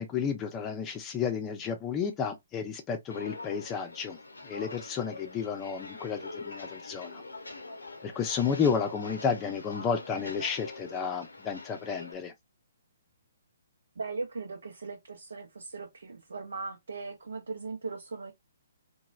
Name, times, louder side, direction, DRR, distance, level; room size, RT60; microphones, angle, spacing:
voice 1, 0.0-4.2 4.4-7.2 8.0-12.3, left 6 dB, 20° left, 0.6 m, -32 dB
Walk footsteps, 3.1-12.1, left 3 dB, 90° left, 0.7 m, -44 dB
voice 2, 14.0-18.3, right 4 dB, 75° right, 0.7 m, -38 dB
3.0 x 2.2 x 2.3 m
figure-of-eight pair, 135°, 0 cm